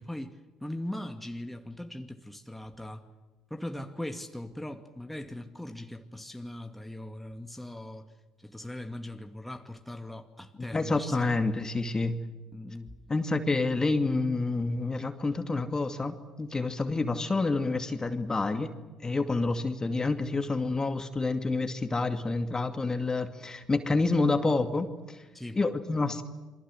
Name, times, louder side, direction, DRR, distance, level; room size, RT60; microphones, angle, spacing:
voice 1, 0.0-3.1 3.5-8.1 8.4-11.3 11.9-12.0 12.5-13.0 25.3-25.6, left 1 dB, 5° left, 2.4 m, -40 dB
voice 2, 10.7-12.1 13.1-18.7 19.0-25.2 25.6-26.2, left 3 dB, 25° left, 2.4 m, -28 dB
28.5 x 23.5 x 7.7 m
hypercardioid pair, 50°, 3 cm